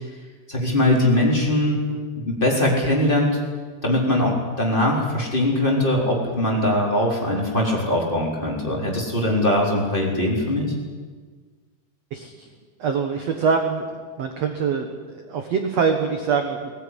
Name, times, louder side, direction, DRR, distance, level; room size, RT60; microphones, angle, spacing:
voice 1, 0.5-1.8 2.2-3.4 3.8-10.7, left 1 dB, 10° left, -2 dB, 3.9 m, -21 dB
voice 2, 12.1-12.5 12.8-13.9 14.2-16.7, right 5 dB, 60° right, 5 dB, 1.9 m, -24 dB
20.0 x 19.0 x 10.0 m, 1.5 s
omnidirectional pair, 4.9 m